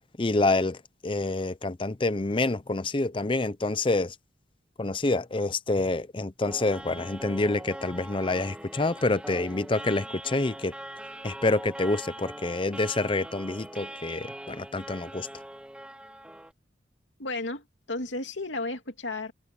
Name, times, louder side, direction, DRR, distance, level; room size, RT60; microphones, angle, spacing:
voice 1, 0.2-0.8 1.0-4.1 4.8-10.7 11.2-15.3, left 2 dB, 30° left, 0.6 m, -27 dB
sound 1, 6.4-16.5, right 1 dB, 5° right, 1.5 m, -42 dB
voice 2, 17.2-19.3, left 2 dB, 85° left, 2.6 m, -33 dB
head